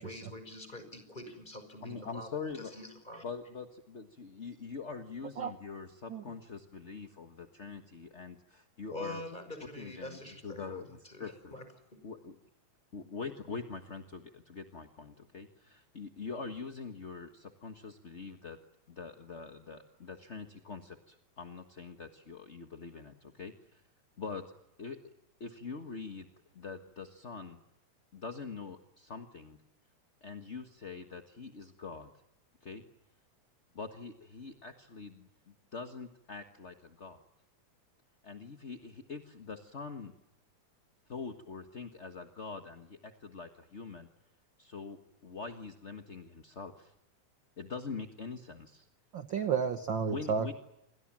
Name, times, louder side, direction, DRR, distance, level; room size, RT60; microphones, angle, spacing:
voice 1, 0.0-3.2 8.9-11.7 11.9-12.0, left 1 dB, 15° left, 8 dB, 5.5 m, -45 dB
voice 2, 1.8-2.7 3.2-9.2 9.8-11.5 12.0-12.4 12.9-18.6 18.9-23.8 24.2-24.4 24.8-25.0 25.4-26.3 26.5-27.6 28.1-29.6 30.2-32.1 32.6-32.8 33.7-37.2 38.2-40.1 41.1-44.1 44.6-46.9 47.6-48.9 50.1-50.5, left 5 dB, 35° left, 6 dB, 1.1 m, -44 dB
voice 3, 49.1-50.5, right 6 dB, 50° right, 9 dB, 1.5 m, -32 dB
28.0 x 23.5 x 7.5 m, 0.85 s
omnidirectional pair, 3.4 m